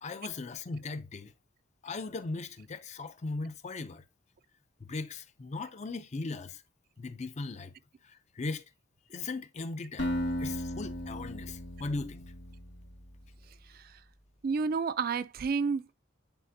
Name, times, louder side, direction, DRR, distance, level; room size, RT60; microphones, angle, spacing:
voice 1, 0.0-1.3 1.8-4.0 4.8-6.6 7.0-7.7 8.0-8.6 9.1-12.2, left 3 dB, 35° left, 0.4 m, -38 dB
Acoustic guitar, 10.0-13.0, equal, 60° left, 1.8 m, -36 dB
voice 2, 14.4-15.9, right 5 dB, 45° right, 0.4 m, -30 dB
9.0 x 4.2 x 2.6 m
head